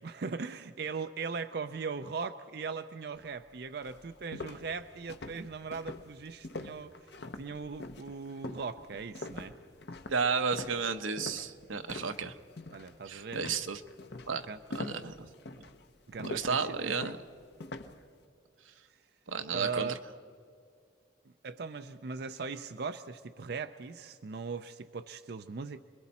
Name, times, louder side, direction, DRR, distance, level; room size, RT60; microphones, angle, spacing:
voice 1, 0.0-9.5 12.7-13.4 14.5-14.6 16.1-17.1 19.5-20.0 21.4-25.8, right 5 dB, 55° right, 9 dB, 0.5 m, -39 dB
sound 1, 3.3-3.4 3.8-12.3 12.6-13.0 13.3-18.0, left 2 dB, 60° left, 0.9 m, -44 dB
voice 2, 10.1-12.3 13.1-13.8 14.3-14.5 14.7-15.3 16.2-17.2 19.3-19.9, right 5 dB, 85° right, 8 dB, 1.0 m, -32 dB
29.5 x 21.5 x 4.3 m, 2.3 s
head